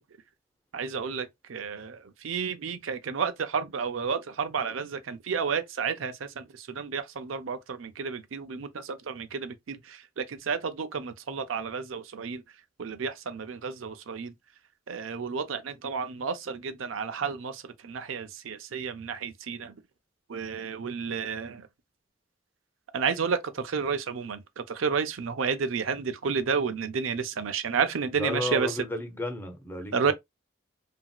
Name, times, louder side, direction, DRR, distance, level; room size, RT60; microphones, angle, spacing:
voice 1, 0.7-12.4 12.8-14.3 14.9-19.7 20.3-21.7 22.9-28.8 29.9-30.1, right 5 dB, 85° right, 0.5 m, -31 dB
voice 2, 28.2-30.1, left 1 dB, 10° left, 0.5 m, -33 dB
2.9 x 2.6 x 2.3 m
head